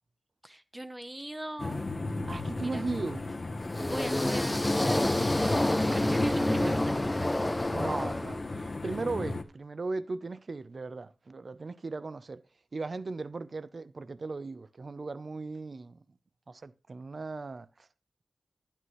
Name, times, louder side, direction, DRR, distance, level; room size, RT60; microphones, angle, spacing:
voice 1, 0.4-1.9 2.6-2.8 3.6-7.4, right 1 dB, 15° right, 0.8 m, -42 dB
sound 1, 1.6-9.4, left 2 dB, 45° left, 0.9 m, -35 dB
voice 2, 2.3-3.2 6.6-6.8 7.7-12.4 12.7-16.0 16.5-17.9, right 3 dB, 55° right, 0.5 m, -37 dB
sound 2, 3.6-8.8, left 1 dB, 15° left, 0.5 m, -28 dB
11.0 x 10.0 x 3.1 m
wide cardioid pair, 90°, 0 cm